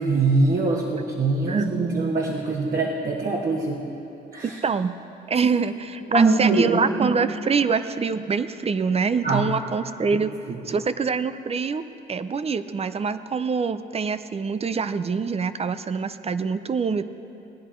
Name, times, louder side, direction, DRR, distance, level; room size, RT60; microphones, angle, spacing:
voice 1, 0.0-3.8 4.3-4.6 6.1-7.2 9.2-9.5 10.5-10.6, right 3 dB, 45° right, -2 dB, 1.4 m, -22 dB
voice 2, 4.4-4.9 5.3-10.3 10.7-11.8 12.1-17.0, right 5 dB, 30° right, 12 dB, 0.5 m, -25 dB
18.5 x 10.0 x 4.5 m, 2.9 s
cardioid pair, 90°, 20 cm